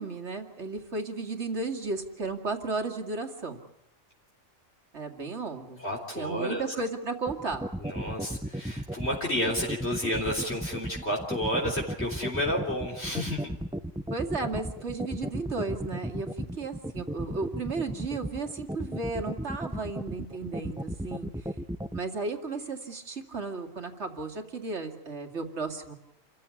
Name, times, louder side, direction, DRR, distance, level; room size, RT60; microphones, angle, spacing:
voice 1, 0.0-3.6 4.9-5.8 6.1-7.6 14.1-21.5 21.9-25.9, right 3 dB, 55° right, 5 dB, 2.5 m, -34 dB
voice 2, 5.8-6.6 7.8-13.5, equal, 50° left, -2 dB, 3.9 m, -31 dB
sound 1, 7.3-22.0, right 1 dB, 5° right, 0.5 m, -34 dB
28.0 x 15.0 x 9.8 m, 0.80 s
omnidirectional pair, 1.4 m